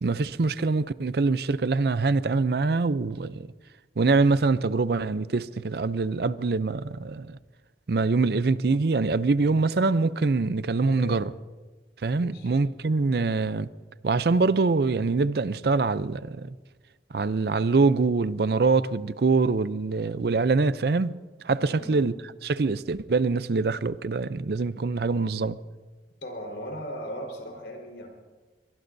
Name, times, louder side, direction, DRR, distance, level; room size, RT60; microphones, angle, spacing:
voice 1, 0.0-3.5 4.0-7.4 7.9-11.3 12.0-13.7 14.0-16.5 17.1-22.1 22.4-25.6, right 3 dB, 60° right, 0.5 m, -24 dB
voice 2, 10.9-11.3 12.1-12.6 21.6-22.0 26.2-28.1, equal, 85° left, 4.3 m, -38 dB
23.0 x 22.5 x 2.7 m
head